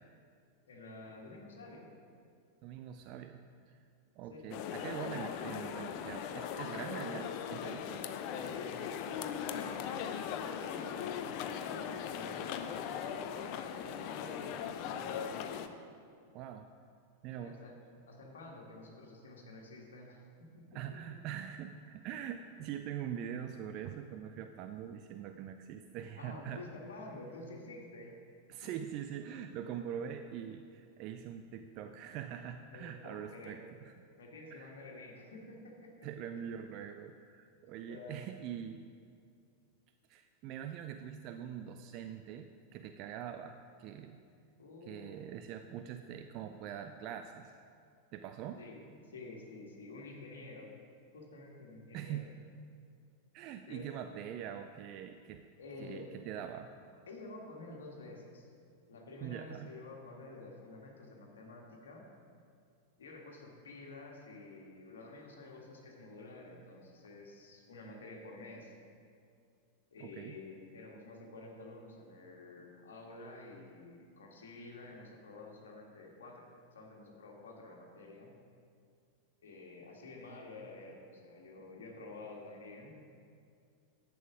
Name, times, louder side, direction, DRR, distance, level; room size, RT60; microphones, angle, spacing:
voice 1, 0.7-1.9 4.3-4.6 8.4-12.9 13.8-15.6 17.4-17.7 18.1-21.0 26.2-28.2 28.6-28.7 29.0-29.1 32.7-33.6 34.2-35.9 37.9-38.2 44.6-45.3 48.6-48.8 49.0-50.7 51.1-52.3 53.7-54.0 55.6-56.1 57.1-58.5 58.9-62.1 63.0-68.7 69.9-78.3 79.4-83.0, left 2 dB, 65° left, -1 dB, 1.8 m, -50 dB
voice 2, 2.6-3.8 4.2-8.0 16.3-16.7 17.2-17.6 20.7-26.6 28.5-33.9 34.5-34.8 36.0-38.8 40.1-44.2 44.8-47.6 48.1-48.6 51.9-52.3 53.3-55.4 55.8-56.7 59.2-59.7 70.0-70.4, right 9 dB, 40° right, 7 dB, 0.4 m, -43 dB
sound 1, 4.5-15.7, left 8 dB, 45° left, 0.6 m, -39 dB
11.0 x 8.5 x 4.9 m, 2.3 s
figure-of-eight pair, 90°, 0 cm